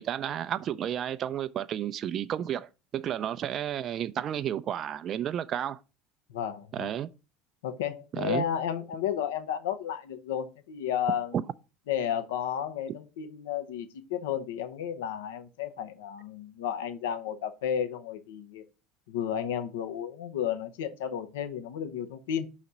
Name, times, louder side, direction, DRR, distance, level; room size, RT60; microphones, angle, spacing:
voice 1, 0.0-5.8 6.7-7.1 8.1-8.4, right 10 dB, 45° right, 0.4 m, -32 dB
voice 2, 6.3-6.9 7.6-11.4 11.9-18.6 19.1-22.5, left 9 dB, 80° left, 0.8 m, -32 dB
5.7 x 4.1 x 6.1 m
hypercardioid pair, 80°, 0 cm